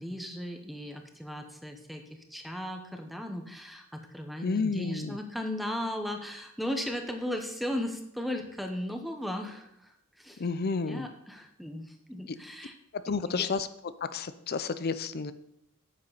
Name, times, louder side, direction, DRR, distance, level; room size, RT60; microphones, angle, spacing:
voice 1, 0.0-10.4 10.7-12.7 13.2-13.5, equal, ahead, 4 dB, 1.0 m, -36 dB
voice 2, 4.4-5.2 10.4-11.1 12.3-12.4 12.9-13.7 14.0-15.3, left 4 dB, 45° left, 13 dB, 0.5 m, -31 dB
9.4 x 8.5 x 4.0 m, 0.75 s
head